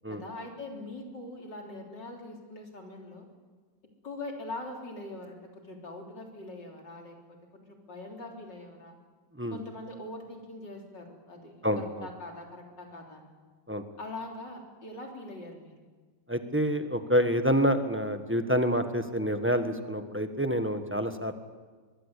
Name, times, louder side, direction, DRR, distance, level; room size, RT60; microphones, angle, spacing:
voice 1, 0.1-3.3 4.0-9.0 9.5-13.3 14.0-15.8, left 2 dB, 85° left, 1 dB, 4.3 m, -42 dB
voice 2, 11.6-12.1 13.7-13.8 16.3-21.4, equal, 10° right, 7 dB, 1.2 m, -27 dB
23.5 x 22.0 x 8.4 m, 1.4 s
omnidirectional pair, 1.9 m